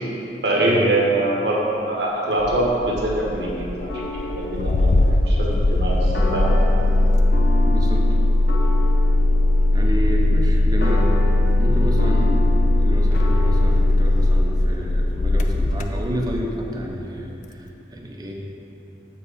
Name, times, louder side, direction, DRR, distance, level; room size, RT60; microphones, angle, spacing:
voice 1, 0.4-4.0 4.3-6.5, right 1 dB, 70° right, -3 dB, 1.3 m, -23 dB
Engine starting, 2.4-16.5, left 2 dB, 45° left, 0.4 m, -19 dB
sound 1, 3.9-14.6, left 2 dB, 70° left, 0.9 m, -32 dB
voice 2, 7.7-8.1 9.7-11.3 11.6-12.5 12.8-18.4, equal, 20° right, 0 dB, 0.7 m, -30 dB
7.7 x 4.6 x 5.0 m, 3.0 s
head